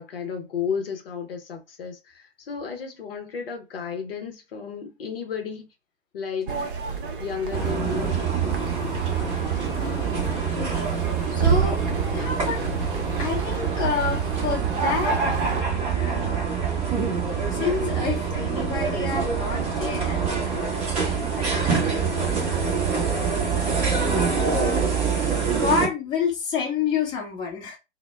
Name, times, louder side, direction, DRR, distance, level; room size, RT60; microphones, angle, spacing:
voice 1, 0.0-5.7 6.1-6.5 7.2-8.7, left 6 dB, 55° left, 0.7 m, -33 dB
sound 1, 6.5-15.6, right 5 dB, 50° right, 0.7 m, -31 dB
sound 2, 7.5-25.9, right 6 dB, 15° right, 0.8 m, -25 dB
voice 2, 9.8-11.8 12.1-12.6 13.2-15.2 15.9-16.6 17.5-20.2 20.5-23.1 23.8-25.0 25.5-27.8, left 6 dB, 15° left, 0.7 m, -30 dB
2.1 x 2.0 x 3.1 m
figure-of-eight pair, 115°, 35 cm